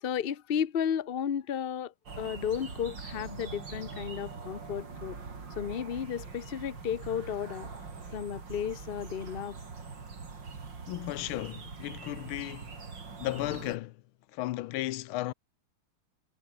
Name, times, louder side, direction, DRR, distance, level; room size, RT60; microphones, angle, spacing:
voice 1, 0.0-5.2 5.6-7.8 8.1-9.6, left 8 dB, 40° left, 0.8 m, -33 dB
sound 1, 2.1-13.8, right 4 dB, 60° right, 3.9 m, -43 dB
voice 2, 10.9-12.7 13.2-14.0 14.3-15.3, left 17 dB, 85° left, 1.5 m, -34 dB
omnidirectional pair, 2.2 m